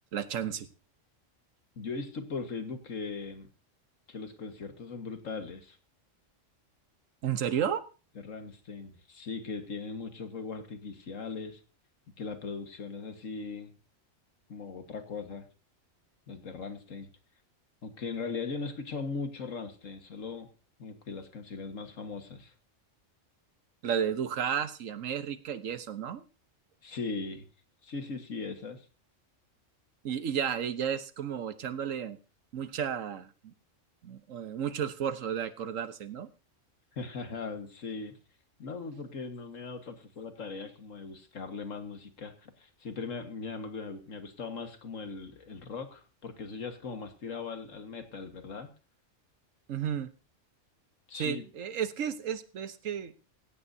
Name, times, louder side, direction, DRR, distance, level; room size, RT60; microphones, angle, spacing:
voice 1, 0.1-0.7 7.2-7.8 23.8-26.2 30.0-32.2 32.5-33.5 34.0-36.3 49.7-50.1 51.1-53.1, right 8 dB, 85° right, 12 dB, 1.4 m, -33 dB
voice 2, 1.8-3.5 4.1-5.8 8.2-11.6 12.2-13.7 14.5-15.5 16.3-17.1 17.8-20.5 20.8-22.5 26.8-27.5 27.8-28.9 36.9-38.1 38.6-48.7 51.1-51.4, left 4 dB, 85° left, 7 dB, 2.0 m, -39 dB
16.5 x 16.0 x 2.7 m, 0.34 s
omnidirectional pair, 1.3 m